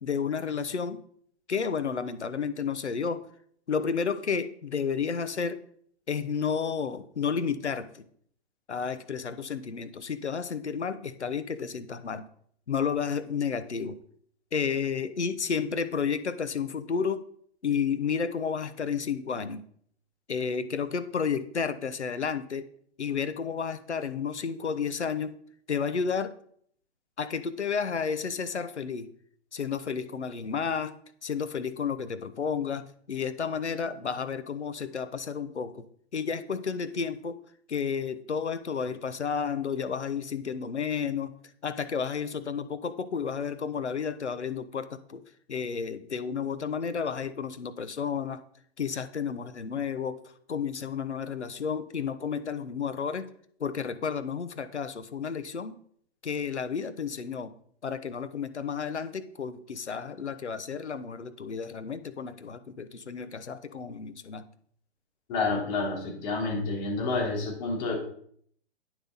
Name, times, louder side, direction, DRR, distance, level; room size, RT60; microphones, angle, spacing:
voice 1, 0.0-1.0 1.5-3.2 3.7-5.6 6.1-8.0 8.7-12.2 12.7-14.0 14.5-17.2 17.6-19.6 20.3-22.6 23.0-25.4 25.7-26.3 27.2-29.1 29.5-30.9 31.2-35.9 36.1-37.4 37.7-41.3 41.6-45.2 45.5-48.4 48.8-50.2 50.5-53.3 53.6-55.8 56.2-57.5 57.8-64.4, left 6 dB, 85° left, 12 dB, 1.0 m, -31 dB
voice 2, 65.3-68.0, left 3 dB, 40° left, -2 dB, 3.7 m, -29 dB
9.4 x 7.2 x 4.1 m, 0.62 s
figure-of-eight pair, 125°, 33 cm